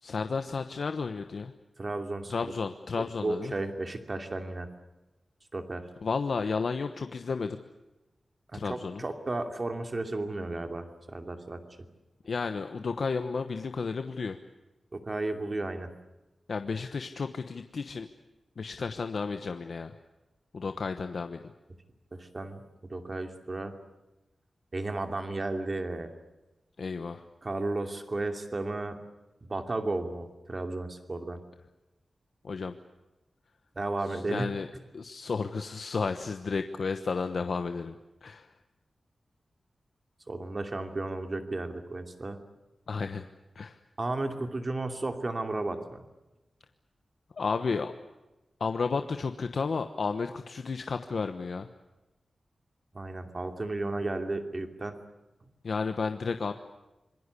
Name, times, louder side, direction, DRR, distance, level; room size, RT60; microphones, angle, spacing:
voice 1, 0.0-1.5 2.3-3.5 6.0-7.6 8.5-9.0 12.2-14.4 16.5-18.1 18.6-19.9 20.5-21.4 26.8-27.2 32.4-32.7 34.1-34.7 34.9-38.5 42.9-43.2 43.5-43.8 47.3-47.9 48.6-51.7 55.6-56.5, left 4 dB, 65° left, 8 dB, 1.1 m, -32 dB
voice 2, 1.8-2.5 3.0-4.7 5.5-5.9 8.5-11.9 15.0-15.9 22.1-23.7 24.7-26.1 27.4-29.0 29.4-31.4 33.7-34.6 40.3-42.4 44.0-46.0 52.9-55.0, right 2 dB, 35° right, 6 dB, 2.7 m, -34 dB
26.5 x 22.5 x 8.4 m, 1.0 s
wide cardioid pair, 150°, 0 cm